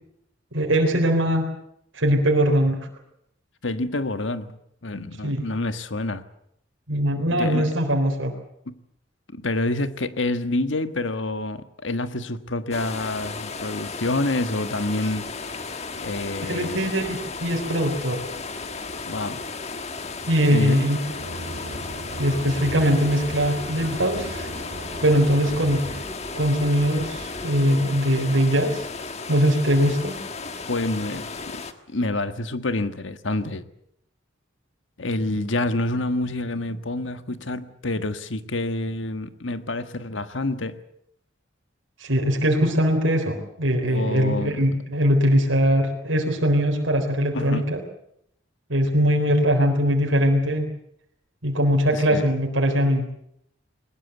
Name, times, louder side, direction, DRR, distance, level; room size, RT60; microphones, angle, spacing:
voice 1, 0.5-1.5 1.9-2.9 5.2-5.4 6.9-8.3 16.4-18.2 20.3-21.0 22.2-24.5 25.0-25.9 26.3-28.9 29.3-30.2 42.0-47.8 48.7-50.7 51.4-53.1, equal, 80° right, 3.9 m, -21 dB
voice 2, 3.6-6.2 7.3-7.7 8.7-8.8 9.3-15.3 16.0-16.9 19.0-19.4 20.5-20.8 30.7-33.6 35.0-40.8 43.9-44.7 47.3-47.6 51.9-52.2, left 2 dB, 75° left, 1.5 m, -28 dB
sound 1, 12.7-31.7, left 4 dB, 35° left, 1.5 m, -35 dB
sound 2, 21.0-26.0, right 1 dB, 60° right, 2.8 m, -37 dB
sound 3, 21.7-27.6, equal, 5° left, 2.6 m, -40 dB
21.5 x 20.5 x 8.1 m
head